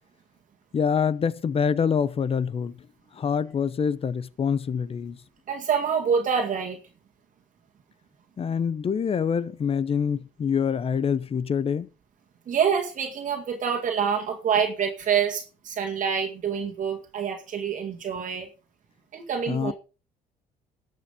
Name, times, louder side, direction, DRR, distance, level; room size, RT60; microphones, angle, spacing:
voice 1, 0.7-2.8 3.1-5.2 8.4-11.9 19.5-19.7, left 7 dB, 35° left, 0.8 m, -25 dB
voice 2, 5.5-6.8 12.5-18.5 19.1-19.7, right 7 dB, 50° right, 2.0 m, -26 dB
12.5 x 7.6 x 5.0 m
cardioid pair, 110°, 17 cm